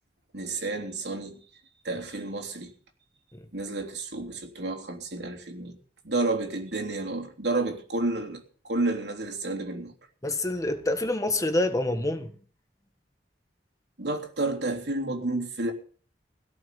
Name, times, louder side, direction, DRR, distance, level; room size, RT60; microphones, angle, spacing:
voice 1, 0.3-1.5 1.8-2.7 3.5-5.8 6.0-9.9 14.0-15.7, right 2 dB, 70° right, 3.3 m, -30 dB
voice 2, 10.2-12.3, left 2 dB, 20° left, 1.4 m, -26 dB
17.0 x 6.0 x 9.4 m
head